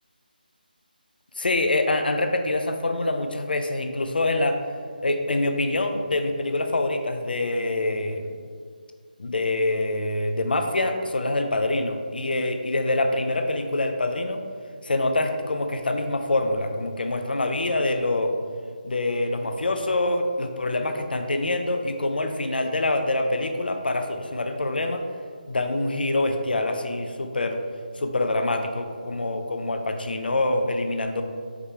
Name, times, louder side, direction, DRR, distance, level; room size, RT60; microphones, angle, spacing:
voice 1, 1.4-4.6 5.0-8.3 9.2-14.4 14.8-18.3 18.8-25.0 25.5-27.6 28.0-31.2, left 2 dB, 70° left, 6 dB, 0.4 m, -25 dB
4.9 x 3.2 x 3.2 m, 2.1 s
figure-of-eight pair, 160°, 5 cm